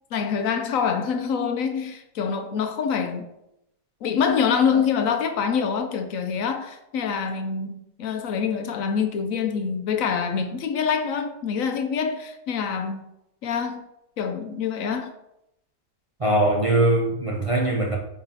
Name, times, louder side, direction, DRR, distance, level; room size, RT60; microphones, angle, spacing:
voice 1, 0.1-3.2 4.0-13.0 13.4-13.8 14.2-15.1, left 6 dB, 65° left, 0.9 m, -25 dB
voice 2, 16.2-18.0, right 1 dB, 60° right, 0.3 m, -21 dB
9.0 x 3.9 x 2.8 m
omnidirectional pair, 1.7 m